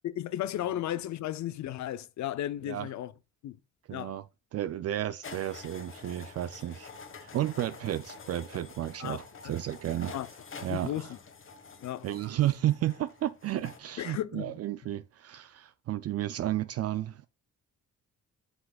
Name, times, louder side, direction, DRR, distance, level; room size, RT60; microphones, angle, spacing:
voice 1, 0.0-3.1 3.4-3.6 3.9-4.2 9.0-9.2 9.4-9.5 10.1-10.3 10.7-11.2 11.8-12.1 14.0-14.5, left 12 dB, 65° left, 0.6 m, -34 dB
voice 2, 3.9-4.2 4.5-6.9 7.2-10.1 10.6-11.1 12.0-17.3, right 13 dB, 55° right, 0.4 m, -32 dB
sound 1, 5.2-13.8, left 4 dB, 45° left, 1.4 m, -48 dB
8.0 x 5.8 x 2.4 m
cardioid pair, 90°, 30 cm